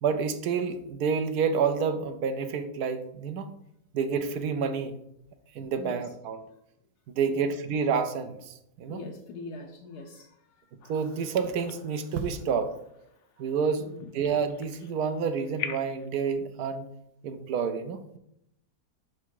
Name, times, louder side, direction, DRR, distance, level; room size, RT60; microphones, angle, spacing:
voice 1, 0.0-3.5 3.9-4.9 5.5-6.5 7.1-9.1 10.9-12.7 13.4-13.8 14.1-16.9 17.2-18.2, right 6 dB, 75° right, 9 dB, 1.2 m, -29 dB
voice 2, 8.9-10.6 13.8-14.1, left 3 dB, 80° left, 1 dB, 1.2 m, -42 dB
sound 1, 10.8-16.1, left 8 dB, 65° left, 0.7 m, -44 dB
6.0 x 4.6 x 4.7 m, 0.79 s
omnidirectional pair, 1.7 m